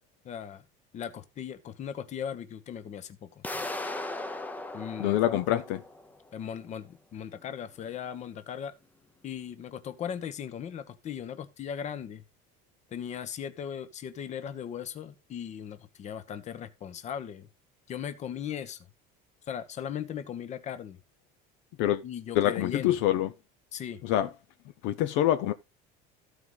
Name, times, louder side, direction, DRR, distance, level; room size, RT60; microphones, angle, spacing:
voice 1, 0.2-0.6 0.9-3.7 4.7-5.6 6.3-8.7 9.2-12.2 12.9-17.5 17.9-18.8 19.5-21.0 22.0-23.0 23.7-24.0, left 8 dB, 35° left, 1.1 m, -38 dB
sound 1, 3.4-6.3, left 2 dB, 10° left, 0.7 m, -37 dB
voice 2, 5.0-5.8 21.8-22.0 22.3-23.3 24.0-24.3 24.8-25.5, left 12 dB, 65° left, 0.7 m, -25 dB
14.0 x 4.9 x 4.0 m
cardioid pair, 155°, 21 cm